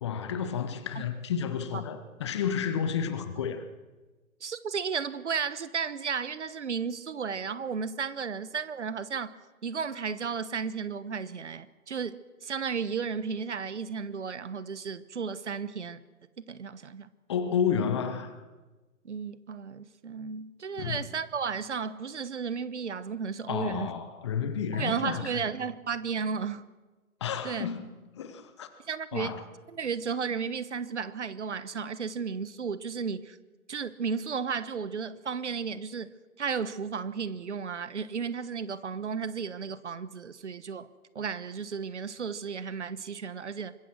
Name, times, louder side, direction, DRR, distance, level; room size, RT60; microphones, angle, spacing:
voice 1, 0.0-3.6 17.3-18.4 20.8-21.0 23.5-25.5 27.2-28.7 29.1-29.4, left 7 dB, 20° left, 1.0 m, -31 dB
voice 2, 4.4-9.3 9.6-16.0 16.5-17.1 19.0-23.9 24.7-26.6 27.4-27.7 28.9-29.4 29.7-33.4 33.7-36.1 36.4-40.9 41.1-43.7, right 6 dB, 50° right, 1.3 m, -34 dB
25.0 x 21.5 x 6.2 m
figure-of-eight pair, 140°, 44 cm